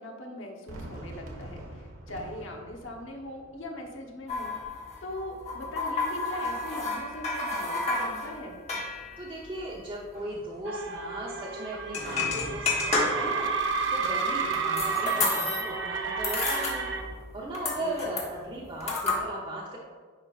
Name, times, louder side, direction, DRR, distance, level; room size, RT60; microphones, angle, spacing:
voice 1, 0.0-8.6 17.8-18.2, equal, 65° left, 1 dB, 1.1 m, -40 dB
Fireworks, 0.7-5.7, right 1 dB, 85° right, 1.2 m, -46 dB
sound 1, 4.3-10.3 10.6-10.7 10.9-11.1 11.8-13.5 14.0-15.8 16.1-17.3 17.5-19.2, left 3 dB, 30° left, 1.2 m, -31 dB
voice 2, 9.2-13.5 13.9-16.9 17.3-19.8, right 1 dB, 25° right, -6 dB, 0.8 m, -37 dB
sound 2, 10.6-17.0, right 5 dB, 60° right, 0.7 m, -31 dB
9.9 x 5.4 x 2.5 m, 1.5 s
head